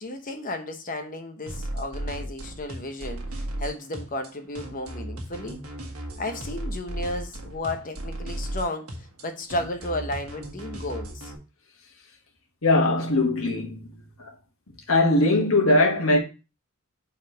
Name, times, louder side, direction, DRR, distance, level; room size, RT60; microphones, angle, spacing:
voice 1, 0.0-5.6 6.2-8.9 9.2-11.3, left 1 dB, 40° left, 0.9 m, -33 dB
sound 1, 1.5-11.4, right 1 dB, 85° right, 1.3 m, -35 dB
voice 2, 12.6-14.0 14.9-16.2, left 2 dB, 70° left, 1.7 m, -20 dB
4.7 x 4.3 x 5.0 m
head